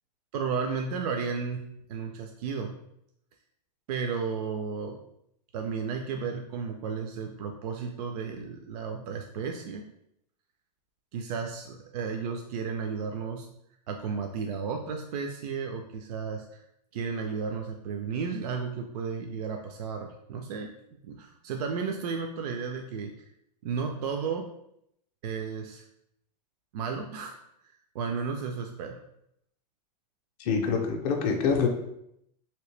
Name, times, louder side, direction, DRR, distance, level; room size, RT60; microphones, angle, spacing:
voice 1, 0.3-1.6 1.9-2.8 3.9-5.0 5.5-9.8 11.1-13.5 13.9-16.6 16.9-20.7 21.0-23.2 23.6-24.5 25.2-25.8 26.7-27.4 27.9-29.0, right 5 dB, 70° right, 3 dB, 0.4 m, -33 dB
voice 2, 30.4-31.7, left 5 dB, 30° left, 1 dB, 0.4 m, -25 dB
3.2 x 2.9 x 3.2 m, 0.77 s
supercardioid pair, 165°, 21 cm